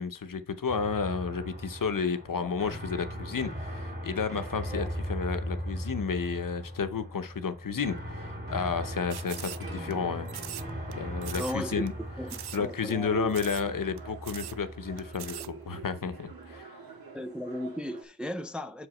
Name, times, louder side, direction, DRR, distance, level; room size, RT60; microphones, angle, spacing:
voice 1, 0.0-10.3 11.0-11.9 12.5-16.8, left 5 dB, 60° left, 0.8 m, -32 dB
sound 1, 0.7-16.6, equal, 25° right, 2.5 m, -39 dB
sound 2, 9.1-9.9 10.3-10.9 11.2-11.6 11.9-12.0 12.3-12.6 12.9-13.0 13.3-13.7 14.0-14.1 14.2-14.6 15.0-15.5, right 10 dB, 85° right, 0.5 m, -41 dB
sound 3, 9.3-18.1, right 5 dB, 70° right, 1.6 m, -48 dB
voice 2, 11.4-11.9 12.2-13.3 17.1-18.9, equal, 5° right, 0.4 m, -36 dB
7.0 x 4.9 x 4.3 m
wide cardioid pair, 90°, 38 cm